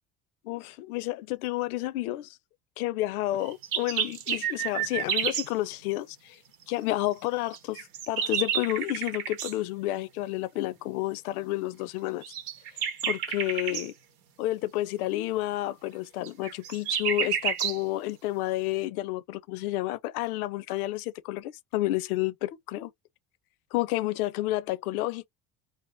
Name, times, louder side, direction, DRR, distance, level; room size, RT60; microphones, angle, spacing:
voice 1, 0.4-2.4 2.8-6.4 6.7-12.2 13.0-13.9 14.4-22.9 23.7-25.3, left 16 dB, 80° left, 0.6 m, -30 dB
sound 1, 3.4-5.5 7.5-9.5 12.2-13.9 16.2-17.8, right 9 dB, 65° right, 0.9 m, -30 dB
2.7 x 2.5 x 3.4 m
hypercardioid pair, 65°, 43 cm